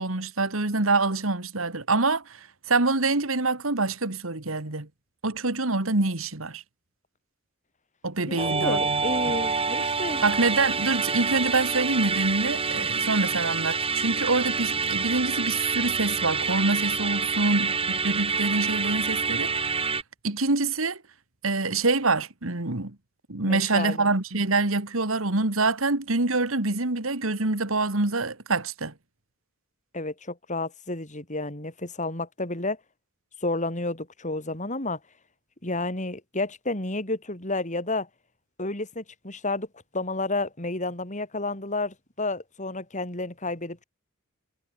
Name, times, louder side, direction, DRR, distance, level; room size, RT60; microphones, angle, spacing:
voice 1, 0.0-2.4 2.7-4.9 5.2-6.6 8.0-9.0 10.2-19.7 20.2-21.0 21.4-23.0 23.3-28.9, right 3 dB, 75° right, 2.3 m, -26 dB
voice 2, 8.3-10.2 12.8-12.9 23.5-24.1 29.9-32.8 33.4-35.0 35.6-38.1 38.6-39.7 39.9-43.8, left 2 dB, 35° left, 5.4 m, -31 dB
Musical instrument, 8.4-20.0, right 5 dB, 25° right, 4.7 m, -27 dB
head